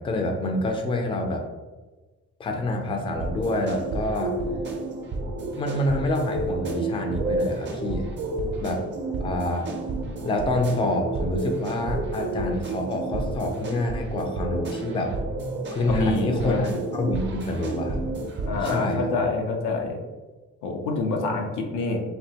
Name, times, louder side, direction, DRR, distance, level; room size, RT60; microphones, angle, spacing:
voice 1, 0.0-1.4 2.4-4.4 5.6-8.1 8.6-8.8 9.2-9.7 10.2-15.1 15.7-18.1 18.6-19.1, left 1 dB, 20° left, 3 dB, 0.4 m, -27 dB
sound 1, 3.2-19.2, right 2 dB, 40° right, 0.5 m, -31 dB
voice 2, 15.8-16.6 18.4-20.0 20.6-22.0, left 3 dB, 85° left, 2 dB, 0.5 m, -26 dB
2.6 x 2.1 x 2.7 m, 1.2 s
cardioid pair, 90°, 30 cm